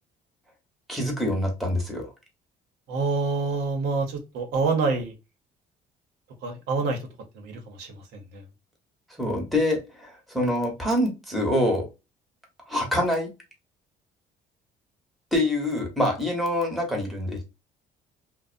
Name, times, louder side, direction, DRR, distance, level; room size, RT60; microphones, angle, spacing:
voice 1, 0.9-2.1 9.2-11.9 12.7-13.3 15.3-17.5, left 1 dB, ahead, 1 dB, 0.9 m, -25 dB
voice 2, 2.9-5.1 6.4-7.0 7.4-7.9 8.3-8.4, right 4 dB, 85° right, 3 dB, 0.8 m, -26 dB
2.5 x 2.0 x 2.4 m, 0.27 s
cardioid pair, 110°, 17 cm